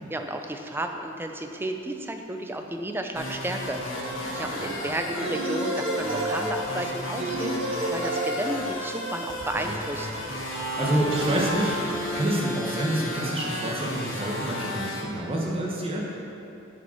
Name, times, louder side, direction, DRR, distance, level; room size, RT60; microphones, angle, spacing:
voice 1, 0.1-3.8 4.3-10.1, right 1 dB, 10° right, 4 dB, 0.5 m, -32 dB
sound 1, 3.1-3.2 3.7-12.2, right 1 dB, 80° right, 1.2 m, -32 dB
sound 2, 3.2-15.0, left 1 dB, 80° left, 1.5 m, -34 dB
voice 2, 10.4-16.1, right 1 dB, 30° right, -3 dB, 1.2 m, -28 dB
9.9 x 5.1 x 5.8 m, 2.8 s
head